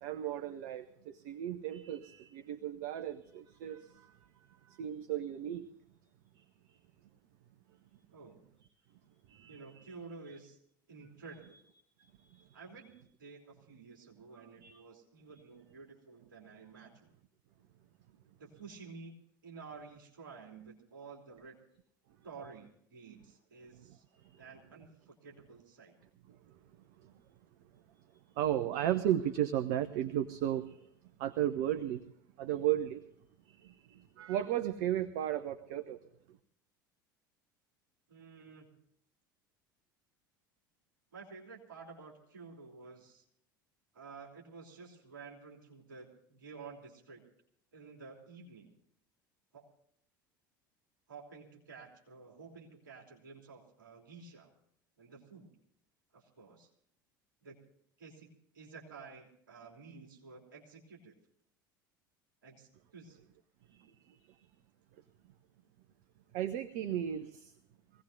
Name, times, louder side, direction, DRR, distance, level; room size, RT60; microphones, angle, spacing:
voice 1, 0.0-4.2 4.6-5.7 6.4-6.5 6.7-6.8 9.3-9.8 12.0-12.5 14.6-14.8 24.1-24.4 26.3-26.6 27.0-27.1 28.3-30.9 31.2-32.0 32.4-33.0 33.5-36.0 63.7-64.5 66.3-67.5, right 11 dB, 55° right, 9 dB, 0.9 m, -35 dB
voice 2, 9.5-10.6 10.9-11.6 12.5-12.9 13.2-17.1 18.4-19.1 19.4-21.6 22.2-24.0 24.4-26.0 38.1-38.7 41.1-43.2 43.9-47.2 47.7-48.8 49.5-49.7 51.1-54.5 55.0-55.5 56.1-56.7 57.4-57.6 58.0-58.3 58.5-61.1 62.4-63.2, right 4 dB, 70° right, -1 dB, 3.2 m, -51 dB
24.0 x 17.5 x 2.7 m, 0.70 s
figure-of-eight pair, 70°, 11 cm